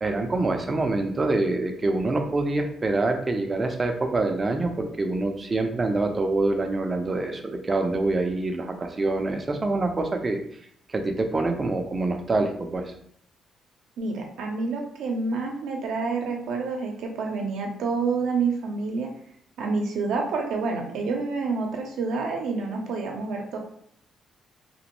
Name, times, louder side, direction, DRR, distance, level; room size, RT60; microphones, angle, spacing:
voice 1, 0.0-10.4 10.9-12.9, right 2 dB, 30° right, 5 dB, 0.4 m, -25 dB
voice 2, 14.0-19.1 19.6-23.6, right 4 dB, 80° right, 1 dB, 0.6 m, -28 dB
2.9 x 2.1 x 3.0 m, 0.67 s
cardioid pair, 90°, 0 cm